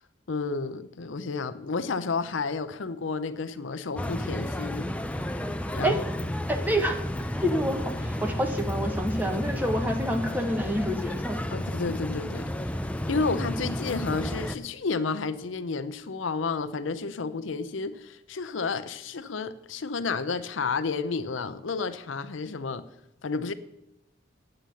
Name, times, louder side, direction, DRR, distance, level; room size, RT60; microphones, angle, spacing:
voice 1, 0.3-4.9 5.7-6.0 11.5-12.8 13.1-22.8 23.2-23.5, left 4 dB, 80° left, 0.6 m, -31 dB
sound 1, 4.0-14.6, left 1 dB, 5° left, 0.4 m, -32 dB
voice 2, 6.5-7.0 7.3-11.4, equal, 10° right, 1.1 m, -28 dB
9.1 x 7.8 x 6.9 m
head